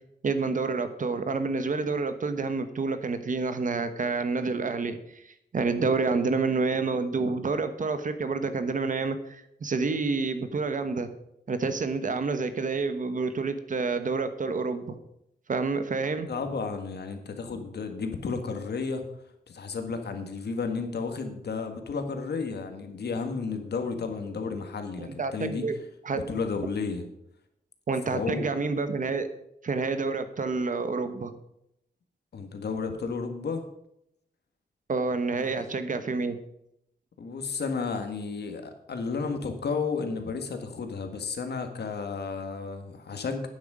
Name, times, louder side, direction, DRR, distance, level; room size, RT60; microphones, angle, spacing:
voice 1, 0.2-11.1 11.5-15.0 15.5-16.3 25.0-25.8 26.0-26.2 27.9-29.3 29.6-31.3 34.9-36.4, right 4 dB, 50° right, 10 dB, 1.2 m, -28 dB
voice 2, 16.3-19.1 19.5-25.6 26.1-27.0 28.1-28.5 32.3-33.6 35.3-35.7 37.2-43.5, left 4 dB, 80° left, 6 dB, 1.8 m, -32 dB
11.0 x 9.4 x 4.9 m, 0.77 s
wide cardioid pair, 140°, 17 cm